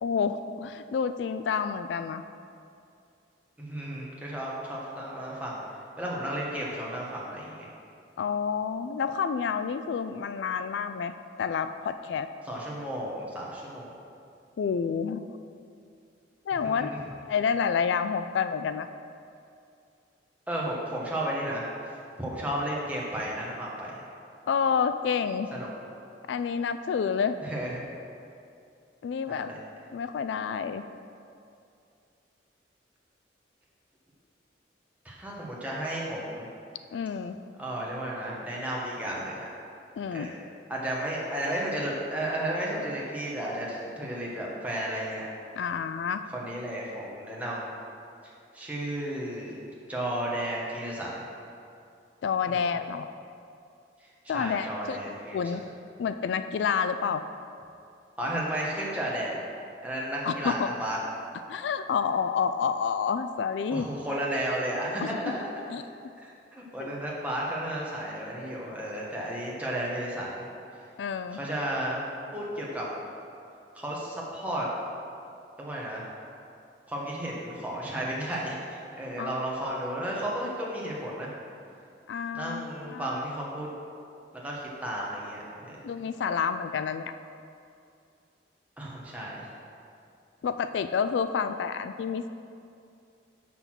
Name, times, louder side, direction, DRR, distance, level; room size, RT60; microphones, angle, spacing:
voice 1, 0.0-2.2 8.2-11.1 11.4-12.3 14.6-15.3 16.5-18.9 24.5-25.5 26.3-27.4 29.0-29.5 29.9-30.8 36.9-37.4 40.0-40.3 45.6-46.2 52.2-53.1 54.3-55.0 55.3-55.6 56.0-57.2 60.2-60.7 61.5-63.9 65.0-65.3 65.7-65.8 66.8-66.9 71.0-71.4 79.2-79.3 82.1-82.6 82.9-83.2 85.8-87.1 90.4-92.3, left 6 dB, 80° left, 10 dB, 0.3 m, -29 dB
voice 2, 3.6-7.7 12.4-13.9 16.6-17.0 20.5-21.7 22.2-24.0 25.5-25.7 27.4-27.9 29.3-29.6 35.0-36.5 37.6-39.4 40.1-40.4 40.7-45.2 46.3-47.7 48.2-49.6 49.9-51.2 52.4-52.6 54.2-55.4 58.2-59.3 59.8-61.0 63.7-65.4 66.2-70.5 71.3-72.0 72.3-72.9 73.7-74.7 75.6-76.1 76.9-81.3 82.3-83.7 84.4-85.8 88.8-89.5, right 1 dB, 10° right, -5 dB, 1.4 m, -33 dB
6.9 x 5.9 x 6.0 m, 2.5 s
head